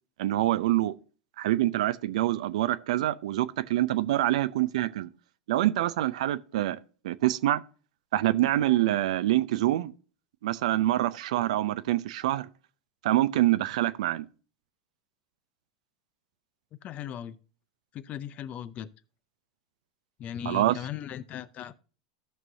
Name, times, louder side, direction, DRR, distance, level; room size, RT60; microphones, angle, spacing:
voice 1, 0.2-0.9 1.4-5.1 5.5-6.8 7.0-7.6 8.1-9.9 10.4-12.5 13.0-14.3 20.5-20.7, right 15 dB, 70° right, 0.6 m, -25 dB
voice 2, 16.8-17.4 17.9-18.9 20.2-21.7, left 9 dB, 40° left, 0.7 m, -38 dB
14.5 x 6.1 x 2.7 m
hypercardioid pair, 95°, 4 cm